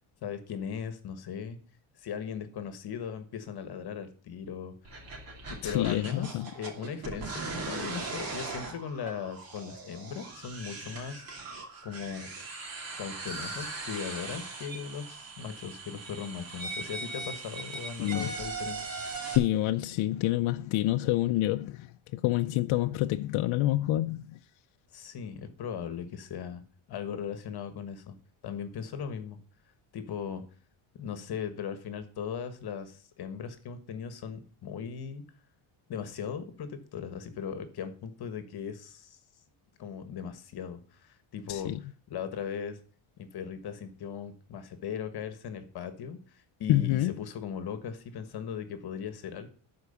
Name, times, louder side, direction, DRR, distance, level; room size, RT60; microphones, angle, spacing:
voice 1, 0.2-1.6 2.0-4.7 5.5-11.2 11.8-12.3 13.0-18.9 24.9-26.6 26.9-28.1 28.4-29.4 29.9-30.4 30.9-35.2 35.9-39.2 39.8-42.8 43.2-49.5, left 7 dB, 50° left, 1.4 m, -38 dB
sound 1, 4.8-19.4, right 3 dB, 45° right, 2.7 m, -39 dB
voice 2, 5.6-6.5 18.0-18.3 19.4-21.9 22.1-24.4 41.5-41.8 46.7-47.1, left 15 dB, 75° left, 0.6 m, -27 dB
12.0 x 4.7 x 7.0 m
cardioid pair, 165°, 49 cm